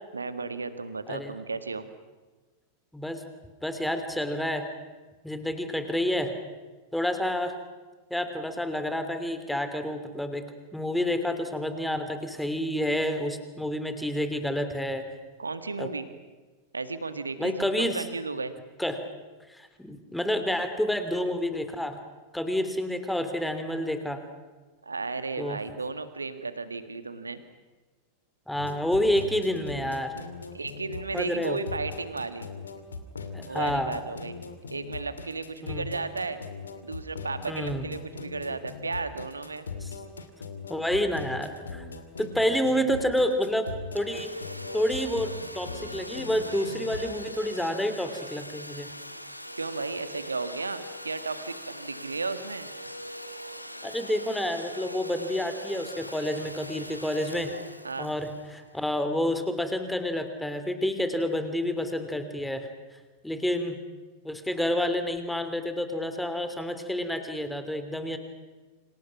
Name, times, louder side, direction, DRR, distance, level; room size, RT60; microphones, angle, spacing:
voice 1, 0.1-1.9 15.4-16.1 16.7-18.5 24.8-27.4 30.5-32.5 33.5-34.4 34.7-36.4 36.8-39.7 49.6-52.7 57.8-58.1, right 3 dB, 80° right, 11 dB, 1.7 m, -34 dB
voice 2, 2.9-3.2 3.6-4.7 5.2-6.3 6.9-7.5 8.1-10.4 10.7-15.0 15.8-15.9 17.4-18.0 18.8-19.0 19.5-21.9 22.3-24.2 25.4-25.6 28.5-30.1 31.1-31.6 33.3-33.9 35.6-35.9 37.5-37.8 39.8-39.9 40.7-41.8 42.2-44.3 44.7-48.9 53.8-57.5 58.0-62.7 63.2-63.8 64.2-68.2, left 1 dB, 5° left, 8 dB, 2.9 m, -29 dB
sound 1, 28.6-47.1, left 4 dB, 75° left, 2.3 m, -40 dB
Domestic sounds home sounds, 44.0-59.4, equal, 90° left, 1.4 m, -41 dB
29.0 x 26.5 x 6.0 m, 1.3 s
figure-of-eight pair, 90°, 0 cm